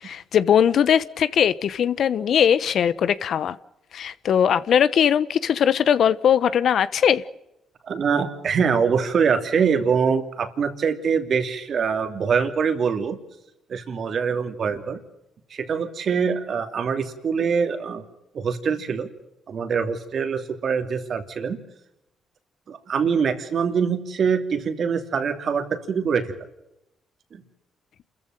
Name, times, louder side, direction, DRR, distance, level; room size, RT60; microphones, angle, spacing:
voice 1, 0.0-3.6 3.9-7.2, left 8 dB, 65° left, 16 dB, 1.0 m, -20 dB
voice 2, 7.8-13.2 13.7-15.0 15.5-18.0 18.3-19.1 19.5-21.6 22.7-26.3 27.3-27.4, right 6 dB, 55° right, 7 dB, 2.9 m, -24 dB
28.0 x 14.5 x 9.0 m, 0.89 s
cardioid pair, 90°, 0 cm